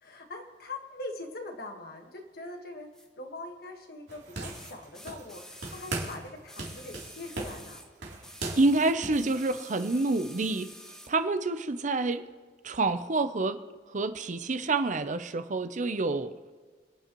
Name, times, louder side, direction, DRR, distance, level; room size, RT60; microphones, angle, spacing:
voice 1, 0.0-2.9 3.2-7.8, left 2 dB, 60° left, 4 dB, 1.5 m, -42 dB
sound 1, 2.9-3.1 4.5-7.9 8.2-11.2 12.1-12.2, equal, 5° left, 1.1 m, -49 dB
sound 2, 4.1-5.4 5.6-6.3 6.6-9.2, right 2 dB, 75° right, 3.2 m, -38 dB
voice 2, 8.6-10.7 11.1-12.2 12.6-13.6 13.9-16.3, right 3 dB, 45° right, 10 dB, 0.6 m, -27 dB
27.0 x 9.3 x 3.0 m, 1.5 s
head